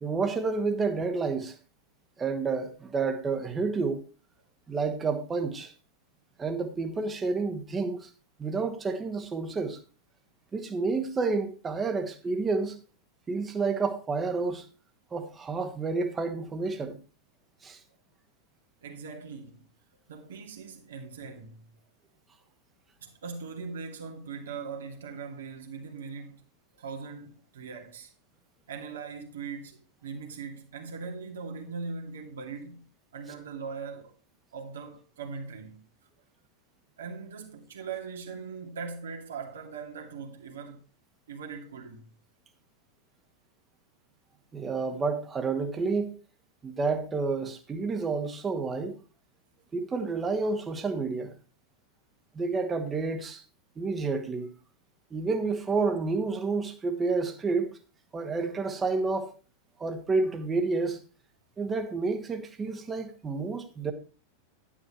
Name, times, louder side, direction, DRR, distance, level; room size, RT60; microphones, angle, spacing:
voice 1, 0.0-1.6 2.2-4.0 4.7-5.7 6.4-8.1 8.4-9.8 10.5-12.8 13.3-14.6 15.1-17.0 17.6-17.8 44.5-46.1 46.6-49.0 49.7-51.3 52.4-53.4 53.8-54.5 55.1-57.7 58.1-59.3 59.8-61.0 61.6-63.9, right 4 dB, 20° right, 1.9 m, -29 dB
voice 2, 18.8-19.6 20.1-21.7 23.0-26.4 26.8-28.1 28.7-32.9 33.1-34.1 34.5-35.8 37.0-40.8 41.3-42.1, right 5 dB, 65° right, 2.6 m, -40 dB
11.5 x 10.0 x 3.1 m
figure-of-eight pair, 90°, 0 cm